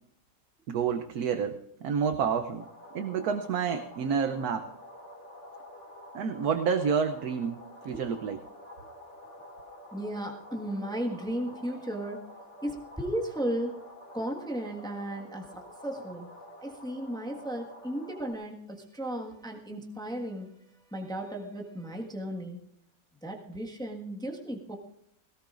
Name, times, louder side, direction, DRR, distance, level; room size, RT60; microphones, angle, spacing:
voice 1, 0.7-2.6 2.9-4.7 6.1-7.6 7.8-8.4, right 6 dB, 65° right, 6 dB, 1.1 m, -29 dB
sound 1, 2.6-18.3, left 1 dB, 40° left, 2.8 m, -49 dB
voice 2, 9.9-12.3 12.6-13.8 14.1-16.3 16.6-20.5 20.9-22.6 23.2-24.8, right 1 dB, ahead, 0 dB, 1.4 m, -35 dB
20.5 x 18.0 x 2.5 m, 0.73 s
omnidirectional pair, 2.0 m